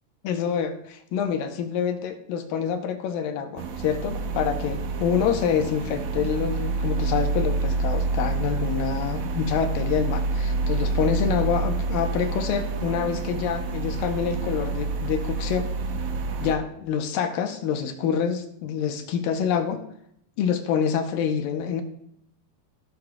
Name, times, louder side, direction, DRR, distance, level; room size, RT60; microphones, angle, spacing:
voice 1, 0.2-15.7 16.4-19.8 20.4-21.8, left 7 dB, 90° left, 6 dB, 2.6 m, -26 dB
sound 1, 3.6-16.5, right 3 dB, 70° right, 2.1 m, -28 dB
14.5 x 6.8 x 2.3 m, 0.73 s
omnidirectional pair, 4.0 m